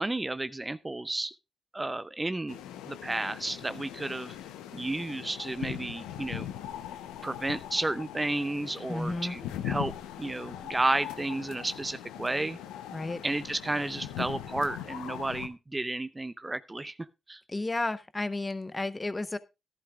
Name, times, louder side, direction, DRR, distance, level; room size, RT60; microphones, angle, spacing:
voice 1, 0.0-1.3 1.7-2.6 2.9-4.4 4.7-6.5 7.2-9.4 9.6-9.9 10.2-12.6 13.2-17.0 17.3-17.4, right 2 dB, 20° right, 14 dB, 0.6 m, -32 dB
sound 1, 2.5-15.5, left 11 dB, 80° left, 0.8 m, -40 dB
voice 2, 8.9-9.4 12.9-13.2 17.5-19.4, left 2 dB, 25° left, 13 dB, 1.0 m, -32 dB
14.0 x 11.5 x 2.4 m, 0.25 s
hypercardioid pair, 40°, 0 cm